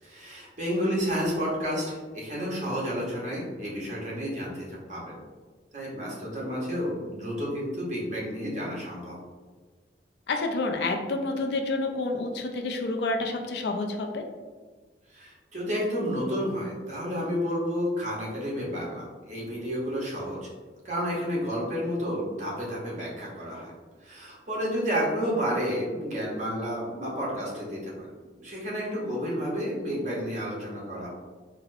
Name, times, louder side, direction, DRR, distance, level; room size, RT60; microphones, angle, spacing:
voice 1, 0.0-5.1 5.7-9.2 15.1-20.5 20.8-23.7 24.0-28.1 28.4-31.1, equal, 45° right, -4 dB, 0.9 m, -31 dB
voice 2, 10.3-14.2, left 2 dB, 70° left, 3 dB, 0.4 m, -29 dB
4.0 x 2.0 x 2.5 m, 1.4 s
head